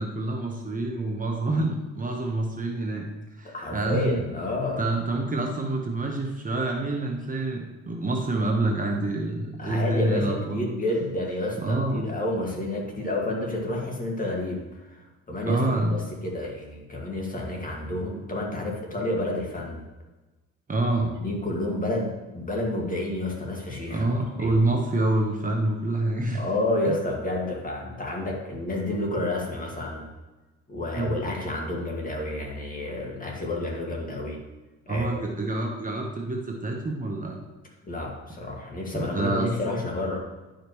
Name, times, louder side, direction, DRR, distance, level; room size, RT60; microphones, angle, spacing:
voice 1, 0.0-3.1 3.3-4.2 4.8-10.7 11.6-12.0 15.5-16.0 20.7-21.1 23.9-26.4 26.9-27.0 31.0-31.2 34.9-37.4 38.9-39.5, right 2 dB, 25° right, 1 dB, 1.1 m, -27 dB
voice 2, 3.4-4.8 9.6-19.8 21.0-24.0 24.4-24.6 26.3-30.1 30.7-34.4 34.9-35.3 37.8-40.2, left 1 dB, 25° left, -1 dB, 1.9 m, -30 dB
11.0 x 5.2 x 3.1 m, 1.2 s
cardioid pair, 90°, 30 cm